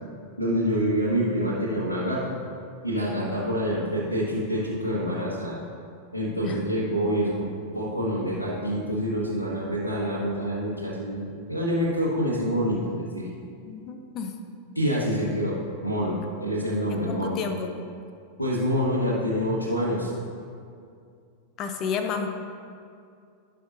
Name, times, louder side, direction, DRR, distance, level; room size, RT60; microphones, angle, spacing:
voice 1, 0.4-2.3 2.8-5.6 6.1-13.3 14.7-17.4 18.4-20.1, equal, 85° left, -5 dB, 1.6 m, -27 dB
voice 2, 13.7-14.4 17.0-17.7 21.6-22.3, left 6 dB, 35° left, 6 dB, 0.9 m, -31 dB
16.5 x 5.9 x 2.7 m, 2.4 s
figure-of-eight pair, 90°, 0 cm